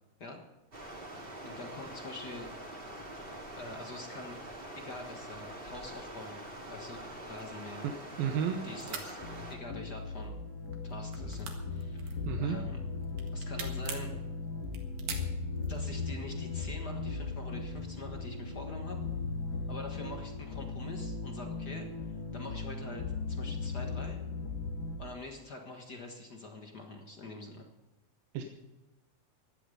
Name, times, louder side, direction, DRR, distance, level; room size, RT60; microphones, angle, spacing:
Stream, 0.7-9.6, right 1 dB, 20° right, 2.1 m, -45 dB
voice 1, 1.4-2.5 3.5-6.4 6.7-7.9 8.6-9.2 9.5-10.3 10.8-12.8 13.3-14.1 15.7-19.0 19.7-24.2 25.0-27.7, left 2 dB, 50° left, 3 dB, 1.2 m, -45 dB
sound 1, 7.3-8.5 8.8-9.1 9.9-10.4 10.6-12.6 13.0-14.1 14.6-15.8, right 7 dB, 65° right, 3.3 m, -42 dB
voice 2, 8.2-8.6 12.3-12.6 28.3-28.4, right 8 dB, 85° right, 4 dB, 2.8 m, -31 dB
sound 2, 9.2-25.0, left 4 dB, 70° left, 3.8 m, -37 dB
16.5 x 11.5 x 5.4 m, 1.1 s
omnidirectional pair, 4.0 m